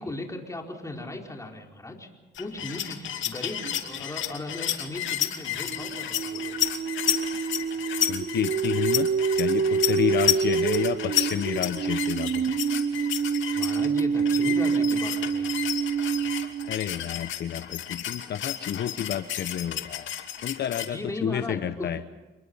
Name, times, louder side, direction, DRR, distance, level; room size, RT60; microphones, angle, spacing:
voice 1, 0.0-2.1 2.4-6.6 13.5-15.6 20.8-21.9, left 2 dB, 15° left, 1 dB, 4.7 m, -37 dB
sound 1, 2.3-20.9, left 11 dB, 75° left, 2.5 m, -31 dB
sound 2, 3.6-3.8 5.7-16.8, right 6 dB, 50° right, 0.9 m, -27 dB
voice 2, 8.1-12.6 16.7-20.1 20.4-22.0, left 9 dB, 60° left, 11 dB, 0.9 m, -30 dB
27.5 x 22.0 x 5.6 m, 1.2 s
cardioid pair, 90°, 20 cm